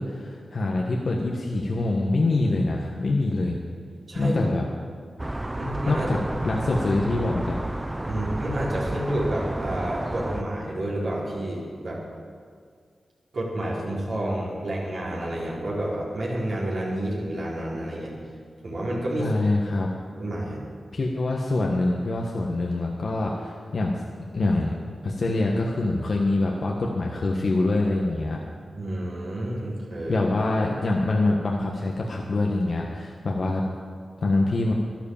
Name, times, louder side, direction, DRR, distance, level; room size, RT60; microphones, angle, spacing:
voice 1, 0.0-3.6 4.1-4.6 5.9-6.2 6.4-7.6 19.2-19.9 20.9-24.0 24.3-24.7 25.0-28.4 30.1-33.6 34.2-34.7, left 2 dB, 65° left, -1 dB, 1.4 m, -25 dB
voice 2, 4.1-4.4 5.5-6.1 8.0-12.0 13.3-18.1 18.6-19.3 20.2-20.6 28.7-30.3, right 1 dB, 70° right, -5 dB, 4.4 m, -29 dB
sound 1, 5.2-10.4, right 1 dB, 20° right, 0.7 m, -31 dB
12.0 x 11.5 x 7.3 m, 2.1 s
cardioid pair, 45°, 0 cm